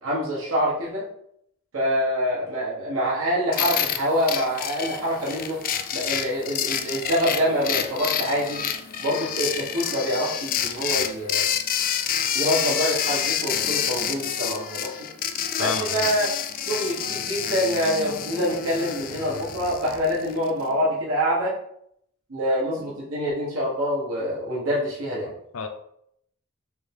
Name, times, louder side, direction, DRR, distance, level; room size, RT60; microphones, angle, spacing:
voice 1, 0.0-1.1 1.7-5.6 5.9-8.7 9.0-11.5 12.3-15.1 15.6-16.3 16.6-21.5 22.3-25.3, equal, 85° right, -7 dB, 1.4 m, -26 dB
sound 1, 3.5-20.5, left 9 dB, 40° left, 0.3 m, -28 dB
voice 2, 15.6-16.0 25.2-25.7, left 4 dB, 85° left, 5 dB, 0.6 m, -31 dB
3.9 x 3.5 x 3.4 m, 0.71 s
head